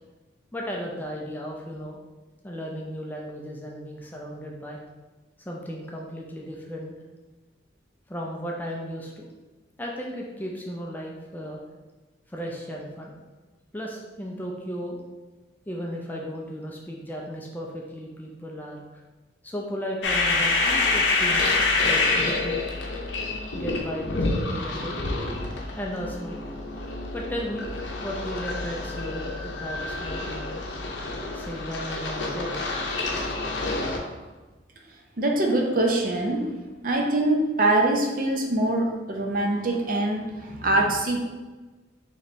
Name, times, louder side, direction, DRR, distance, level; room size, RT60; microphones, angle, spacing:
voice 1, 0.5-2.0 2.4-4.8 5.5-6.9 8.1-9.3 9.8-11.6 12.3-13.1 13.7-15.0 15.7-18.8 19.4-22.6 23.5-25.2 25.8-26.4 27.1-27.7 28.0-30.6 31.3-32.6, equal, 10° left, -2 dB, 0.4 m, -35 dB
sound 1, 20.0-34.0, left 3 dB, 70° left, 0.6 m, -27 dB
voice 2, 35.2-36.5 36.8-41.2, right 2 dB, 45° right, 1 dB, 0.5 m, -23 dB
3.2 x 3.0 x 4.1 m, 1.2 s
head